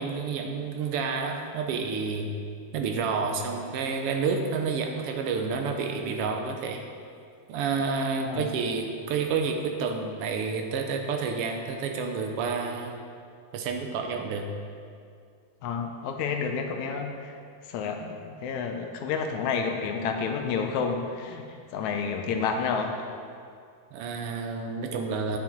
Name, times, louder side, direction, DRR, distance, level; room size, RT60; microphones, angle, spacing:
voice 1, 0.0-2.3 2.7-6.9 7.5-13.0 13.5-14.5 23.9-25.4, right 5 dB, 80° right, 4 dB, 1.3 m, -29 dB
voice 2, 15.6-17.4 17.7-23.1, left 5 dB, 80° left, 4 dB, 2.1 m, -30 dB
9.5 x 7.4 x 4.5 m, 2.3 s
omnidirectional pair, 3.3 m